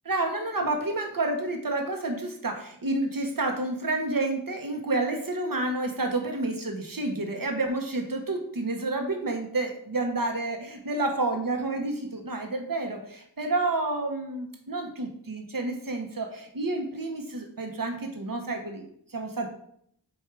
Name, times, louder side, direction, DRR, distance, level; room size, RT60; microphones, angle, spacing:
voice 1, 0.0-19.5, right 2 dB, 50° right, 3 dB, 1.2 m, -29 dB
8.0 x 2.7 x 4.7 m, 0.69 s
wide cardioid pair, 50°, 43 cm